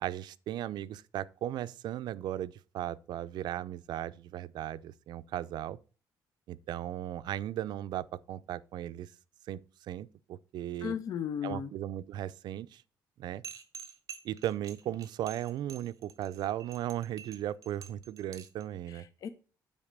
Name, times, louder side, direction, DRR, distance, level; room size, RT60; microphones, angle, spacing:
voice 1, 0.0-5.8 6.5-9.1 9.5-10.9 11.4-12.8 13.2-13.4 14.2-19.0, right 12 dB, 70° right, 0.5 m, -37 dB
voice 2, 10.8-11.7 18.9-19.3, left 8 dB, 50° left, 0.5 m, -36 dB
sound 1, 13.4-18.6, right 6 dB, 50° right, 1.1 m, -48 dB
9.0 x 4.2 x 6.6 m
cardioid pair, 155°, 8 cm